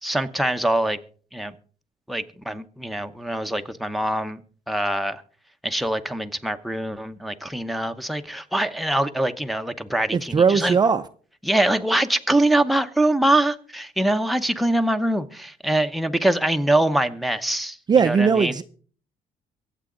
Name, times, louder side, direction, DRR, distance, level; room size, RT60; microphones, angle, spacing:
voice 1, 0.0-1.0 1.3-1.5 2.1-4.4 4.7-5.2 5.6-10.8 11.4-18.5, right 1 dB, ahead, 0.8 m, -23 dB
voice 2, 10.1-11.0 17.9-18.6, right 6 dB, 30° right, 0.6 m, -18 dB
23.5 x 8.3 x 3.8 m
cardioid pair, 130°, 15 cm